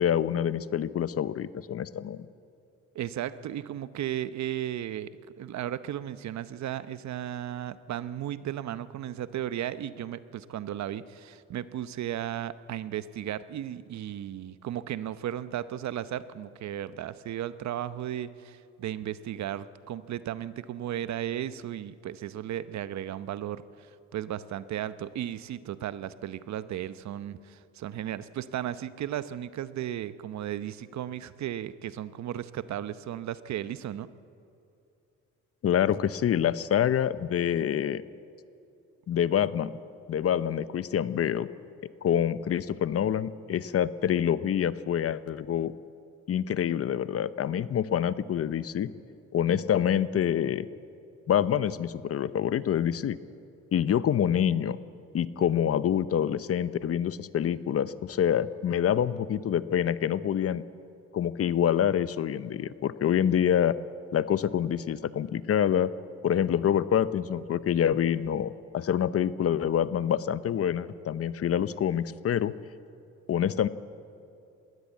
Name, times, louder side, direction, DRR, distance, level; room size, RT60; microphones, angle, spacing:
voice 1, 0.0-2.3 35.6-38.0 39.1-39.7 40.1-41.5 42.0-45.7 46.3-48.9 49.3-50.7 51.3-53.2 53.7-54.8 55.1-60.6 61.1-63.7 64.1-65.9 66.2-72.5 73.3-73.7, left 9 dB, 50° left, 16 dB, 0.7 m, -26 dB
voice 2, 2.9-5.1 5.4-34.1, right 11 dB, 65° right, 14 dB, 0.8 m, -35 dB
21.0 x 17.5 x 8.4 m, 2.6 s
cardioid pair, 90°, 30 cm